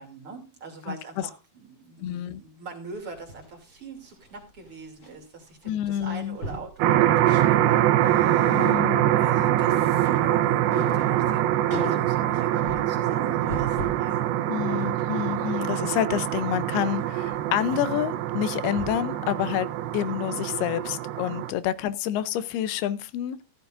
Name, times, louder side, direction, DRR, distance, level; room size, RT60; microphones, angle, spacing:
voice 1, 0.0-8.8 9.1-14.3, right 4 dB, 40° right, 3.3 m, -43 dB
voice 2, 2.0-2.4 5.7-6.4 8.5-9.1 14.5-23.4, left 11 dB, 85° left, 2.7 m, -28 dB
sound 1, 3.0-5.1 5.4-5.6 5.9-6.7 7.3-7.9 8.2-14.1 14.5-19.2 19.5-19.6, left 1 dB, 30° left, 8.5 m, -40 dB
sound 2, 6.8-21.5, right 12 dB, 80° right, 2.7 m, -24 dB
15.0 x 12.5 x 2.6 m
omnidirectional pair, 4.4 m